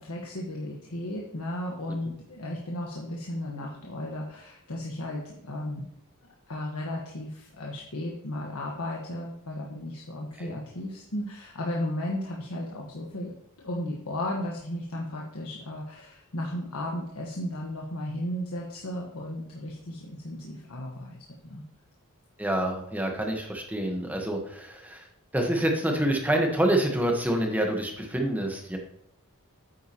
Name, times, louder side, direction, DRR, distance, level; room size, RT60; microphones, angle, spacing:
voice 1, 0.0-5.9 6.5-13.3 13.6-21.6, left 1 dB, 85° left, -3 dB, 1.4 m, -35 dB
voice 2, 22.4-25.1 25.3-28.8, right 1 dB, 10° right, 2 dB, 1.2 m, -27 dB
9.3 x 8.4 x 3.0 m, 0.74 s
head